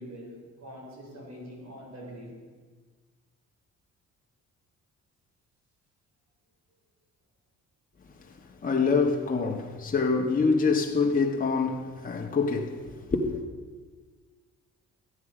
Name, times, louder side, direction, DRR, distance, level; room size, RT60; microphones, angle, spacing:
voice 1, 0.0-2.4, equal, 60° right, 3.8 m, -44 dB
voice 2, 8.6-13.4, left 4 dB, 30° left, 1.3 m, -26 dB
14.0 x 8.8 x 4.9 m
cardioid pair, 90°, 30 cm